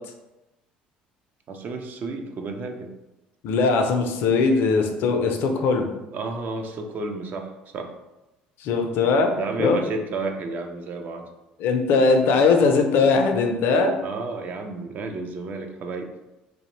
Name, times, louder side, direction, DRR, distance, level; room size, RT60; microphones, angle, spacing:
voice 1, 1.5-2.9 6.1-7.9 9.3-11.2 14.0-16.1, right 3 dB, 50° right, 4 dB, 0.4 m, -31 dB
voice 2, 3.4-5.9 8.6-9.3 9.6-9.8 11.6-13.9, left 4 dB, 65° left, 4 dB, 0.4 m, -20 dB
2.5 x 2.1 x 2.9 m, 0.99 s
hypercardioid pair, 70°, 4 cm